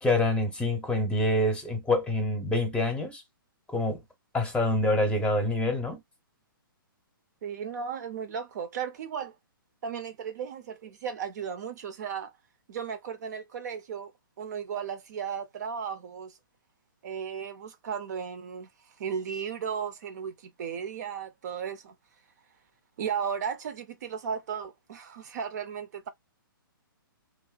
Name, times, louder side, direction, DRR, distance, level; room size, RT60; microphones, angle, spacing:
voice 1, 0.0-3.2 3.7-4.0 4.3-6.0, left 1 dB, 10° left, 0.8 m, -26 dB
voice 2, 7.4-9.3 9.8-12.3 12.7-14.1 14.4-16.3 17.0-18.7 19.0-21.9 23.0-26.1, right 7 dB, 50° right, 0.5 m, -35 dB
2.9 x 2.0 x 2.4 m
hypercardioid pair, 130°, 12 cm